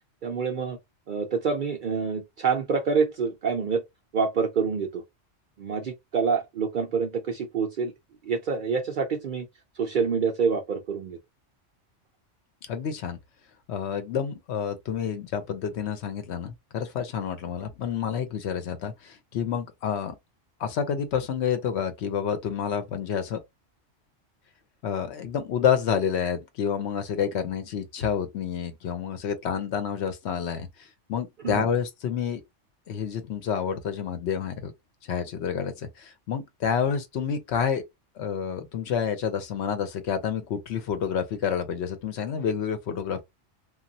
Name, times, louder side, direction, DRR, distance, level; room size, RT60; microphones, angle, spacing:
voice 1, 0.2-0.8 1.1-3.8 4.1-5.0 5.6-7.9 8.2-9.5 9.8-11.2 31.4-31.7, right 5 dB, 60° right, 0.5 m, -27 dB
voice 2, 12.7-13.2 13.7-20.1 20.6-23.4 24.8-32.4 32.9-34.7 35.1-37.8 38.2-43.2, left 7 dB, 70° left, 0.8 m, -29 dB
3.0 x 2.3 x 2.6 m
omnidirectional pair, 1.3 m